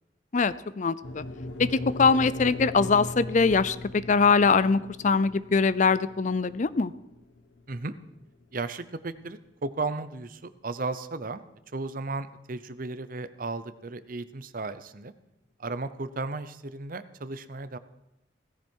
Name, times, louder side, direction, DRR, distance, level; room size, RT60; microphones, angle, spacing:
voice 1, 0.3-1.2 1.6-6.9, left 4 dB, 40° left, 17 dB, 0.5 m, -23 dB
sound 1, 1.0-9.3, left 2 dB, 80° left, 1.3 m, -39 dB
voice 2, 8.5-11.4 11.7-15.1 15.6-17.8, right 3 dB, 50° right, 13 dB, 0.7 m, -35 dB
17.0 x 15.0 x 4.6 m, 0.84 s
head